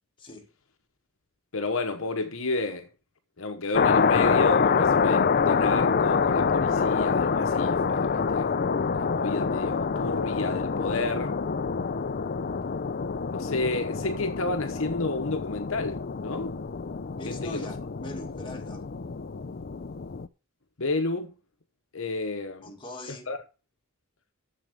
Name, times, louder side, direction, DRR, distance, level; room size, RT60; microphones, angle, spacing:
voice 1, 0.2-0.5 17.2-18.9 22.6-23.3, left 1 dB, 25° left, 2.0 m, -41 dB
voice 2, 1.5-2.9 3.4-11.4 13.3-16.6 17.3-17.7 20.8-21.4 21.9-22.7 23.3-23.4, left 2 dB, 65° left, 1.1 m, -31 dB
sound 1, 3.7-20.3, left 5 dB, 45° left, 0.5 m, -26 dB
7.4 x 7.2 x 6.7 m
head